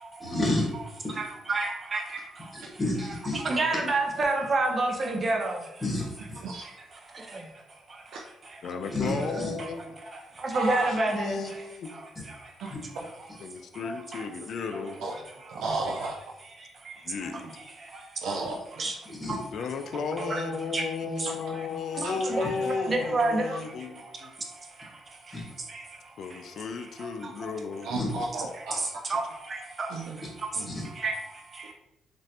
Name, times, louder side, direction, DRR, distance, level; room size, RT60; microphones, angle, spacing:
voice 1, 0.2-0.7 2.5-3.4 5.8-6.4 8.9-9.5 12.7-12.8 19.1-19.4 25.3-25.4 27.9-28.1 30.7-30.8, left 2 dB, 30° left, -4 dB, 1.3 m, -30 dB
voice 2, 1.2-2.3 3.3-5.6 6.6-6.7 8.8-9.7 10.1-11.6 11.9-12.0 12.3-12.4 12.7-12.8 13.8-14.3 14.7-14.8 15.1-15.2 16.9-17.0 17.3-17.6 17.9-18.0 18.8-18.9 19.3-19.4 19.9-21.7 21.9-23.6 24.8-24.9 25.3-25.4 25.7-25.8 27.0-27.5 28.5-30.0 30.4-30.6 31.0-31.7, right 2 dB, 40° right, 2 dB, 0.6 m, -30 dB
voice 3, 8.6-9.8 11.1-12.0 13.4-15.1 17.0-17.5 19.5-24.3 26.2-28.0 29.1-29.2, left 5 dB, 65° left, 7 dB, 0.3 m, -34 dB
voice 4, 10.5-11.0 15.0-15.1 15.5-16.1 18.2-18.9 22.0-22.1 27.8-28.8 29.9-30.3 30.6-30.7, right 3 dB, 85° right, -2 dB, 0.4 m, -33 dB
3.1 x 2.5 x 2.7 m, 0.88 s
cardioid pair, 90°, 0 cm